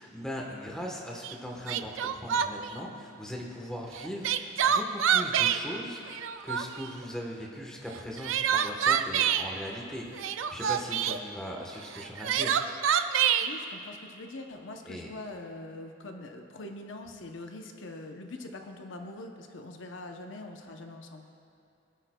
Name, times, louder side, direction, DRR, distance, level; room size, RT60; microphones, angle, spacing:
voice 1, 0.0-12.6 14.9-15.1, equal, 5° left, -2 dB, 1.1 m, -39 dB
Crying sobbing, 1.2-1.3 1.7-2.7 3.9-5.6 6.1-6.9 7.9-9.5 10.1-11.2 11.9-13.5, right 8 dB, 85° right, 0.4 m, -26 dB
voice 2, 13.4-21.3, left 2 dB, 75° left, 4 dB, 0.7 m, -43 dB
23.0 x 9.1 x 2.2 m, 2.6 s
head